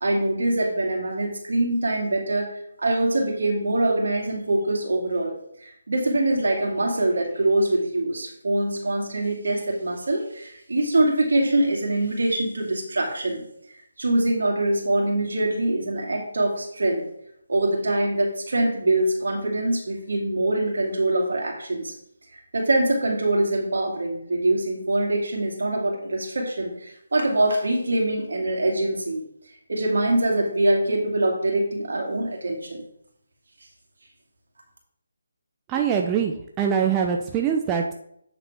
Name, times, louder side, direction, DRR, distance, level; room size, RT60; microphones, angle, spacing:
voice 1, 0.0-13.4 14.0-17.0 17.5-21.9 22.3-29.2 29.7-32.8, right 1 dB, 70° right, 0 dB, 2.6 m, -24 dB
voice 2, 35.7-37.9, right 7 dB, 15° right, 1 dB, 0.6 m, -23 dB
8.7 x 6.6 x 3.5 m, 0.72 s
figure-of-eight pair, 155°, 0 cm